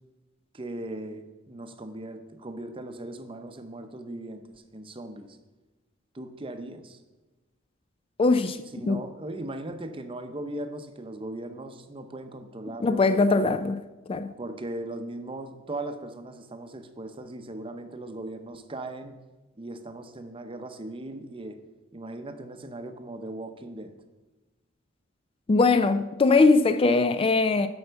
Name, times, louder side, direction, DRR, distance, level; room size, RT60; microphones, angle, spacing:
voice 1, 0.5-5.4 6.1-7.0 8.7-13.5 14.4-19.2 19.6-21.6 21.9-23.9, right 1 dB, 25° right, 0.7 m, -38 dB
voice 2, 8.2-8.6 8.9-9.0 12.8-13.8 14.1-14.3 25.5-27.7, left 3 dB, 30° left, 0.3 m, -21 dB
7.8 x 5.6 x 6.8 m
head